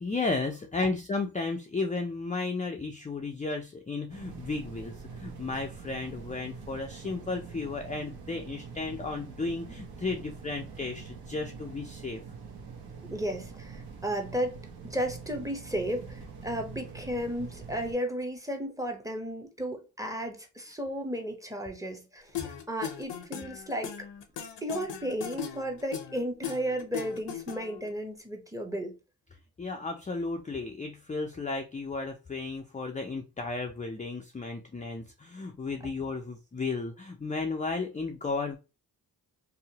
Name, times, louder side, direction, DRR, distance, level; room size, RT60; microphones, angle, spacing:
voice 1, 0.0-12.2 29.6-38.6, left 3 dB, 20° left, 0.4 m, -34 dB
sound 1, 4.1-18.0, right 5 dB, 55° right, 0.8 m, -45 dB
voice 2, 13.0-14.6 14.8-24.1 24.6-28.9, equal, 10° right, 0.7 m, -34 dB
sound 2, 22.3-27.9, left 9 dB, 70° left, 0.6 m, -38 dB
2.8 x 2.0 x 2.7 m
cardioid pair, 45°, 44 cm